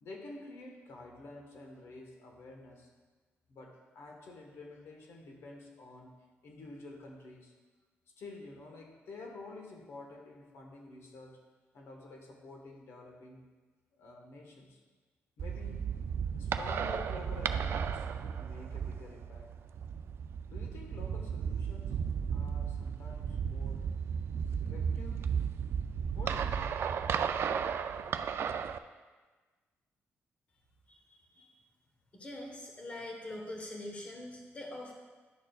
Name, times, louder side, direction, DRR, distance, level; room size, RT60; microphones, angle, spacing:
voice 1, 0.0-2.9 3.5-6.1 6.4-7.5 8.2-11.4 11.7-13.4 14.0-14.8 15.4-15.9 16.4-19.5 20.5-22.0 22.3-23.9 24.6-25.3 26.1-26.8 28.0-28.2, left 2 dB, 70° left, 1 dB, 1.3 m, -49 dB
sound 1, 15.4-28.8, right 7 dB, 60° right, 0.3 m, -34 dB
voice 2, 32.1-34.9, left 1 dB, 25° left, 0 dB, 1.2 m, -43 dB
11.0 x 6.6 x 2.4 m, 1.3 s
cardioid pair, 125°, 5 cm